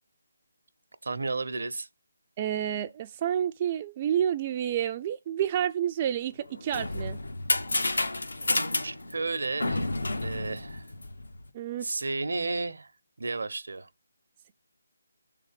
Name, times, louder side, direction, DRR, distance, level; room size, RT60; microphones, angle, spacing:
voice 1, 1.0-1.9 8.8-9.9 10.2-10.8 11.8-12.9 13.2-13.9, right 3 dB, 75° right, 0.8 m, -32 dB
voice 2, 2.4-7.2 11.5-11.9, right 10 dB, 30° right, 0.4 m, -29 dB
sound 1, 6.4-11.4, left 2 dB, 85° left, 1.1 m, -30 dB
6.7 x 3.8 x 5.1 m
figure-of-eight pair, 160°, 0 cm